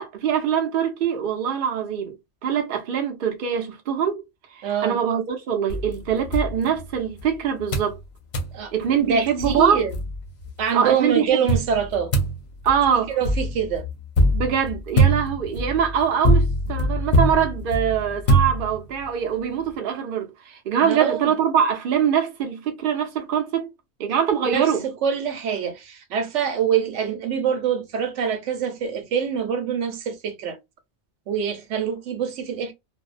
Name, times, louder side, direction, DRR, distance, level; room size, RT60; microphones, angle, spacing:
voice 1, 0.0-2.1 2.4-4.2 4.5-8.0 8.7-9.8 10.7-11.4 12.6-13.1 14.3-23.7 24.0-24.8, right 8 dB, 55° right, 0.8 m, -23 dB
voice 2, 4.6-5.0 8.5-8.7 9.0-9.9 10.6-12.1 13.1-13.9 20.8-21.3 24.5-30.6 31.3-32.7, right 7 dB, 85° right, 1.0 m, -25 dB
sound 1, 5.7-7.3 7.7-8.0 8.3-8.6 9.1-9.2 9.4-10.5 11.5-19.1, right 1 dB, 45° left, 0.7 m, -23 dB
2.6 x 2.1 x 2.4 m
omnidirectional pair, 1.2 m